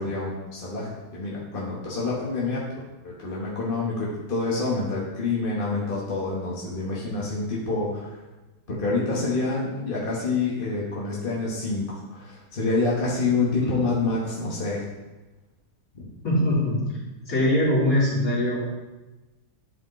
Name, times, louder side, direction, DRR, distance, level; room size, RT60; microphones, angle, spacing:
voice 1, 0.0-8.2 8.7-14.8 15.9-16.0, left 3 dB, 35° left, -5 dB, 1.3 m, -27 dB
voice 2, 16.2-16.8 17.3-18.6, left 1 dB, 55° left, -9 dB, 3.3 m, -22 dB
11.0 x 5.1 x 3.1 m, 1.1 s
omnidirectional pair, 1.7 m